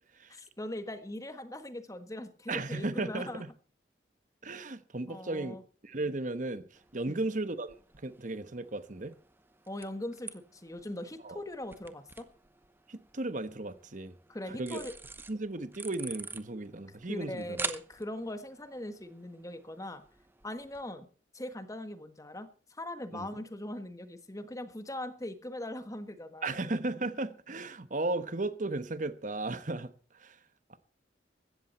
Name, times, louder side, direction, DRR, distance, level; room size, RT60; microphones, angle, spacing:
voice 1, 0.3-3.4 5.1-5.6 7.1-7.2 9.7-12.3 14.3-14.9 17.1-20.0 20.4-21.1 21.3-26.5, left 1 dB, 20° left, 1.5 m, -40 dB
voice 2, 2.5-3.5 4.4-5.6 5.8-9.1 11.2-11.4 12.9-14.2 14.5-14.9 15.3-17.6 23.1-23.3 26.4-30.4 30.7-30.8, right 2 dB, 45° right, 1.2 m, -35 dB
sound 1, 6.7-20.8, right 4 dB, 10° right, 0.9 m, -47 dB
16.0 x 13.5 x 4.3 m
head